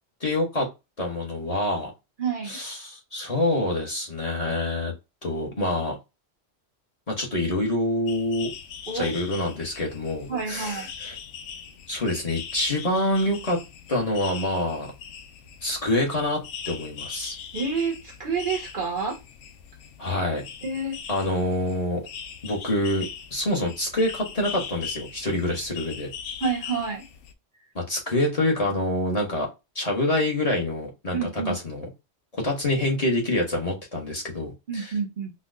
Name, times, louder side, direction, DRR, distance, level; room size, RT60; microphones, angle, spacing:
voice 1, 0.2-0.7 1.0-1.9 2.5-4.9 5.2-6.0 7.1-8.5 8.9-11.1 11.9-13.6 13.9-14.9 15.6-17.4 20.0-20.4 21.1-22.0 22.4-26.1 27.7-29.5 29.7-31.2 31.5-31.9 32.3-34.9, left 1 dB, 35° left, 1.1 m, -26 dB
voice 2, 2.2-2.6 8.9-9.1 10.3-10.9 17.5-19.2 20.6-21.0 26.4-27.1 31.1-31.5 34.7-35.3, right 5 dB, 55° right, 0.7 m, -28 dB
sound 1, 8.1-27.3, left 7 dB, 75° left, 0.9 m, -40 dB
4.0 x 2.3 x 2.5 m
omnidirectional pair, 1.2 m